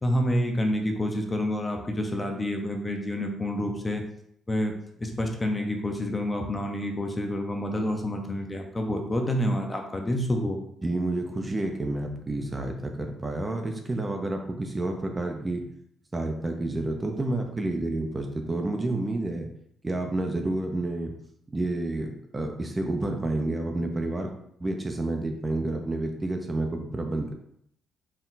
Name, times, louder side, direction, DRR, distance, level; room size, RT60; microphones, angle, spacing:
voice 1, 0.0-4.0 4.5-4.7 5.0-10.6, left 1 dB, 20° left, 3 dB, 0.7 m, -28 dB
voice 2, 10.8-15.6 16.1-19.5 19.8-21.1 21.5-24.3 24.6-27.3, right 2 dB, 20° right, 3 dB, 0.6 m, -29 dB
4.5 x 2.3 x 3.9 m, 0.72 s
cardioid pair, 90°, 0 cm